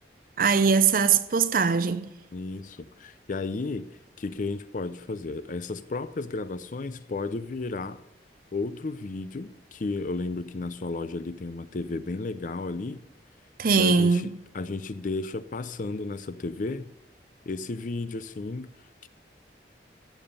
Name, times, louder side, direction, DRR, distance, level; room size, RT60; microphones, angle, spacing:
voice 1, 0.4-2.1 13.6-14.3, right 5 dB, 50° right, 0.6 m, -21 dB
voice 2, 2.3-3.9 4.2-8.0 8.5-13.0 13.8-16.9 17.5-18.7, left 3 dB, 45° left, 0.5 m, -33 dB
14.0 x 7.2 x 5.4 m
head